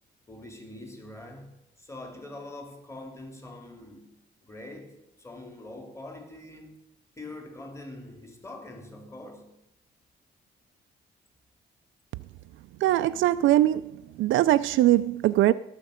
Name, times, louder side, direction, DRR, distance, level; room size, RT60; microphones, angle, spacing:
voice 1, 0.3-4.2 4.4-6.8 7.2-9.6, left 2 dB, 15° left, 2.5 m, -44 dB
voice 2, 12.8-13.9 14.2-15.5, right 14 dB, 80° right, 0.4 m, -21 dB
18.0 x 6.6 x 5.0 m
cardioid pair, 90°, 20 cm